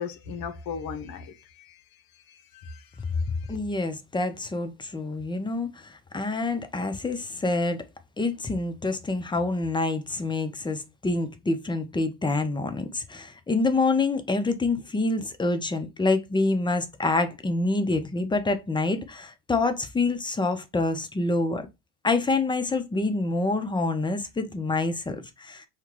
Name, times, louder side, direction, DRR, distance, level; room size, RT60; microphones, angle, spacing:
voice 1, 0.0-1.8 2.3-3.1 3.4-3.5, left 6 dB, 55° left, 0.9 m, -37 dB
voice 2, 3.5-7.8 8.2-21.7 22.0-25.6, left 3 dB, 10° left, 0.7 m, -27 dB
5.7 x 2.3 x 3.0 m
hypercardioid pair, 75°, 43 cm